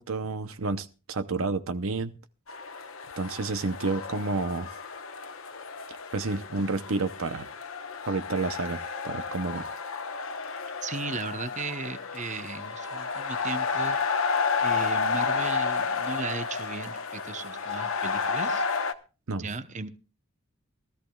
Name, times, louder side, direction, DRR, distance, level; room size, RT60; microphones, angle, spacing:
voice 1, 0.0-2.1 3.2-4.8 6.1-7.5 8.1-8.8 9.0-9.7 19.3-19.5, right 3 dB, 70° right, 11 dB, 0.8 m, -30 dB
sound 1, 2.5-18.9, left 5 dB, 70° left, 1.0 m, -31 dB
voice 2, 10.8-14.3 14.6-18.6 19.4-19.9, right 4 dB, 35° right, 10 dB, 1.0 m, -36 dB
22.0 x 13.5 x 2.3 m, 0.33 s
head